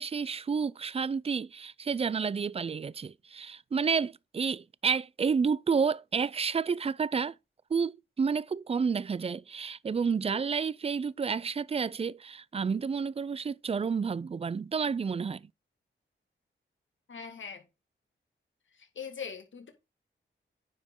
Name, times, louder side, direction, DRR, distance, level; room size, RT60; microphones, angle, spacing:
voice 1, 0.0-7.3 7.7-15.5, right 5 dB, 30° right, 0.4 m, -30 dB
voice 2, 17.1-17.6 18.8-19.7, left 6 dB, 70° left, 2.2 m, -41 dB
9.5 x 5.2 x 3.7 m
cardioid pair, 85°, 21 cm